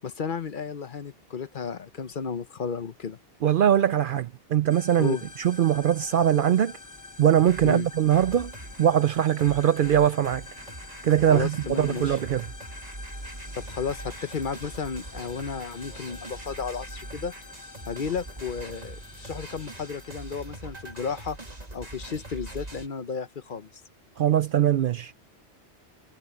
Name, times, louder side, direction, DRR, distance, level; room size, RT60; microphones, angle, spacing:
voice 1, 0.0-3.2 5.0-5.2 7.6-7.9 11.3-12.2 13.6-17.3 17.9-21.4 21.7-23.7, left 6 dB, 50° left, 0.9 m, -33 dB
voice 2, 3.4-6.7 7.2-8.5 8.8-10.4 11.0-12.4 24.2-25.1, right 10 dB, 60° right, 0.6 m, -22 dB
sound 1, 4.7-20.4, left 3 dB, 20° left, 0.7 m, -46 dB
sound 2, 7.2-8.9 9.4-22.9, right 1 dB, 35° right, 2.5 m, -42 dB
omnidirectional pair, 1.2 m